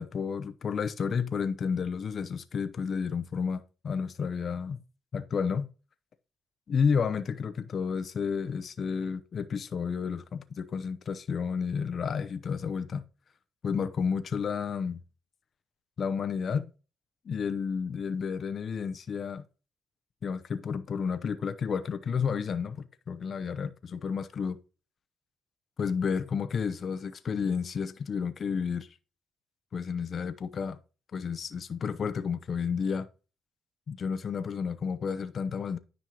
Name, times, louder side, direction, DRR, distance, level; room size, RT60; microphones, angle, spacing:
voice 1, 0.0-4.8 5.1-5.7 6.7-13.0 13.6-15.0 16.0-16.7 17.2-19.5 20.2-24.6 25.8-28.9 29.7-30.8 31.1-33.1 33.9-35.8, left 6 dB, 50° left, 0.7 m, -31 dB
10.0 x 5.4 x 3.0 m
cardioid pair, 90°, 0 cm